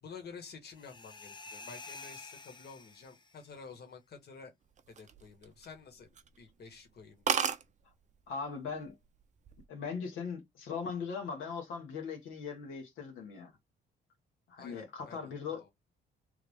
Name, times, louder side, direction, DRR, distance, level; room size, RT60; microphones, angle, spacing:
voice 1, 0.0-4.5 4.9-6.1 6.4-7.5 14.6-15.3 15.6-15.7, left 5 dB, 55° left, 1.5 m, -50 dB
sound 1, 0.7-3.5, left 4 dB, 25° left, 0.7 m, -49 dB
sound 2, 4.8-5.8 6.2-6.4 6.7-6.8 7.0-7.1 7.3-7.6 8.5-8.8 9.2-9.6, right 7 dB, 40° right, 0.5 m, -32 dB
voice 2, 8.3-8.9 9.7-13.5 14.5-15.7, left 5 dB, 85° left, 1.4 m, -39 dB
3.4 x 2.4 x 3.5 m
cardioid pair, 90°, 20 cm